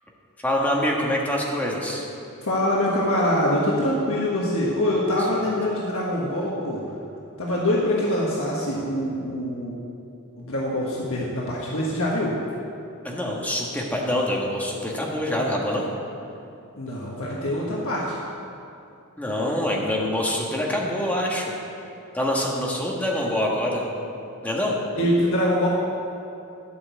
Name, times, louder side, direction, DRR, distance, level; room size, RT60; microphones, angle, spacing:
voice 1, 0.4-2.0 13.0-15.8 19.2-21.5 22.1-23.9 24.4-24.8, left 1 dB, 5° left, -2 dB, 1.6 m, -25 dB
voice 2, 2.4-6.8 7.4-9.7 10.4-12.3 16.8-18.2 24.9-25.7, left 1 dB, 65° left, -4 dB, 1.5 m, -24 dB
12.0 x 6.2 x 8.3 m, 2.7 s
head